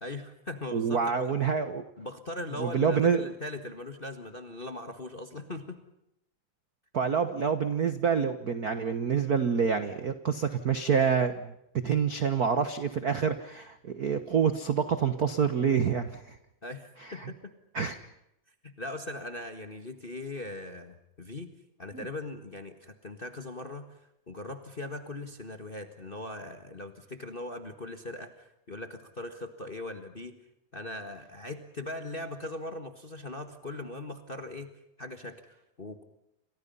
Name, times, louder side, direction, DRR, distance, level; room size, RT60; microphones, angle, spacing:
voice 1, 0.0-1.3 2.0-5.8 16.6-17.5 18.6-21.5 21.8-30.3 30.7-34.7 35.0-36.0, left 2 dB, 25° left, 7 dB, 1.2 m, -40 dB
voice 2, 0.7-1.8 2.6-3.2 6.9-11.5 11.8-16.4 17.0-17.3 17.7-18.0 21.9-22.1, right 6 dB, 60° right, 10 dB, 0.9 m, -27 dB
29.5 x 26.5 x 5.6 m, 0.81 s
omnidirectional pair, 3.5 m